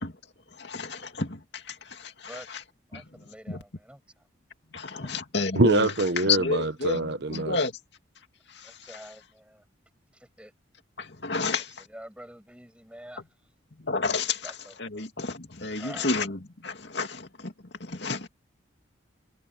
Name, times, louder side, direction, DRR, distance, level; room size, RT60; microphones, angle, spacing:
voice 1, 0.6-2.3 2.9-3.0 3.5-3.6 4.7-5.9 6.2-7.8 8.6-8.7 11.0-11.7 13.8-14.5 14.8-17.5 17.8-18.3, left 4 dB, 65° left, 2.5 m, -30 dB
voice 2, 2.9-4.2 5.0-5.1 7.0-7.1 8.6-9.6 10.1-10.5 11.4-13.5 14.4-15.0 15.8-16.1, equal, 5° right, 7.0 m, -47 dB
voice 3, 5.6-7.6, right 2 dB, 60° right, 1.1 m, -24 dB
head